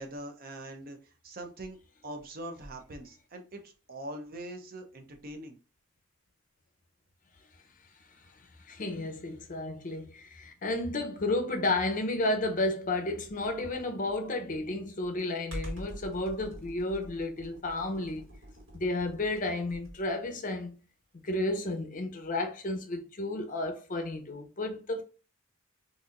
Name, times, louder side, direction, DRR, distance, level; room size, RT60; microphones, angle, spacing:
voice 1, 0.0-1.8 2.0-5.6, right 1 dB, 45° right, 0.6 m, -42 dB
voice 2, 8.7-18.3 18.7-20.8 21.1-25.0, left 2 dB, 40° left, 0.6 m, -32 dB
Computer keyboard, 13.3-20.1, equal, 85° right, 1.7 m, -45 dB
4.1 x 2.6 x 2.4 m
head